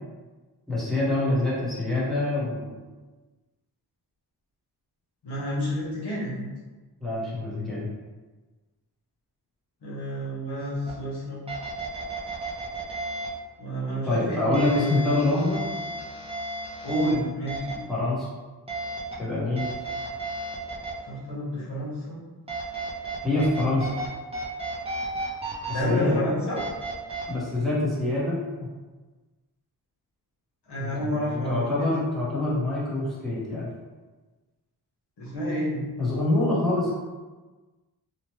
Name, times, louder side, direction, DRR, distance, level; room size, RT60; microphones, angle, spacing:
voice 1, 0.7-2.7 7.0-7.9 14.1-15.6 17.9-18.3 19.2-19.7 23.2-24.0 25.7-26.2 27.3-28.7 30.8-33.7 36.0-36.9, left 2 dB, ahead, -9 dB, 0.8 m, -26 dB
voice 2, 5.2-6.4 9.8-11.4 13.6-15.0 16.8-17.8 21.0-22.2 25.6-26.6 30.7-31.9 35.2-35.8, equal, 75° left, -6 dB, 1.1 m, -29 dB
sound 1, 10.9-11.0 11.5-13.3 14.5-17.1 17.5-17.7 18.7-19.1 19.6-20.9 22.5-24.1 24.3-25.8 26.6-27.2, right 2 dB, 15° right, 0.4 m, -33 dB
2.9 x 2.1 x 3.0 m, 1.3 s
wide cardioid pair, 170°, 41 cm